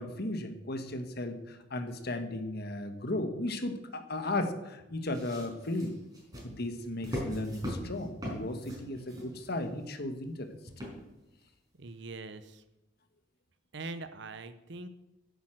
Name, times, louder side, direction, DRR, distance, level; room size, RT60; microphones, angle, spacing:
voice 1, 0.0-6.0 6.4-10.5, left 1 dB, 55° left, 8 dB, 1.5 m, -35 dB
sound 1, 5.1-9.8 10.7-11.3 11.9-12.0, equal, 20° right, 5.3 m, -40 dB
voice 2, 11.8-12.6 13.7-14.9, right 3 dB, 65° right, 11 dB, 0.8 m, -42 dB
10.5 x 8.3 x 7.7 m, 0.95 s
head